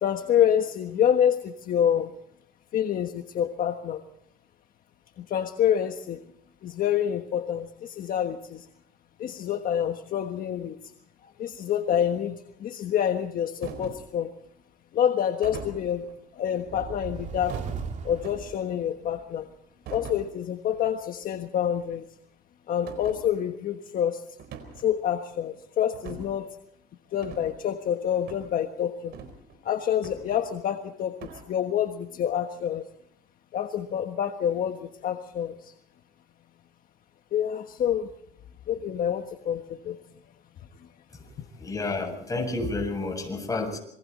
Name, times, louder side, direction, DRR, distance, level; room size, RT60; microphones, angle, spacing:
voice 1, 0.0-2.1 2.7-4.0 5.2-6.2 6.6-8.6 9.2-10.8 11.4-14.3 14.9-16.0 16.3-17.6 18.0-19.5 19.9-22.0 22.7-24.2 24.8-26.6 27.1-29.1 29.6-32.8 33.5-35.7 37.3-38.1 38.7-40.0, left 9 dB, 60° left, 6 dB, 1.4 m, -27 dB
sound 1, 13.6-14.1 15.4-16.2 17.5-18.7 19.9-20.3 20.7-20.9 21.2-21.3 21.8-21.9 22.9-23.2 24.4-24.9 25.9-26.4 27.2-27.5 28.3-28.5 29.1-29.6 30.0-30.8 31.2-31.4, right 6 dB, 75° right, 4.3 m, -42 dB
sound 2, 16.5-19.3, right 6 dB, 45° right, 2.6 m, -37 dB
voice 2, 41.6-43.8, left 3 dB, 20° left, 4 dB, 7.3 m, -30 dB
27.5 x 22.5 x 4.2 m, 0.72 s
cardioid pair, 110°, 17 cm